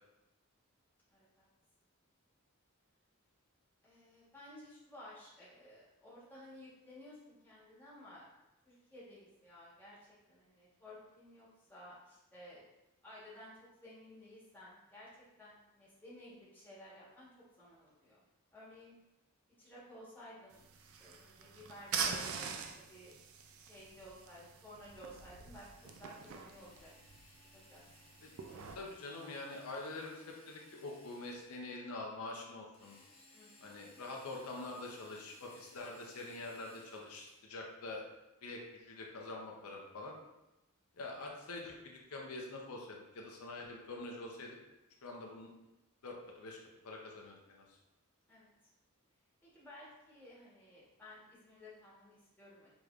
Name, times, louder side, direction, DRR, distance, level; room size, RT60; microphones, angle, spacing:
voice 1, 1.1-1.4 3.8-8.3 8.6-12.7 13.0-15.1 15.4-17.3 17.6-18.2 18.5-19.0 19.6-23.2 23.6-25.7 26.0-26.9 27.5-27.8 33.3-33.8 48.3-48.5 49.4-52.7, left 1 dB, 10° left, -8 dB, 1.2 m, -55 dB
sound 1, 20.5-28.8, right 6 dB, 70° right, 0.4 m, -44 dB
Drill, 25.7-31.8 32.7-37.4, left 2 dB, 25° left, 0.9 m, -63 dB
voice 2, 28.7-33.0 33.6-38.0 38.4-40.2 41.0-44.6 45.0-45.5 46.0-46.6 46.8-47.8, left 2 dB, 90° left, 0 dB, 0.7 m, -45 dB
4.9 x 3.1 x 2.4 m, 0.96 s
head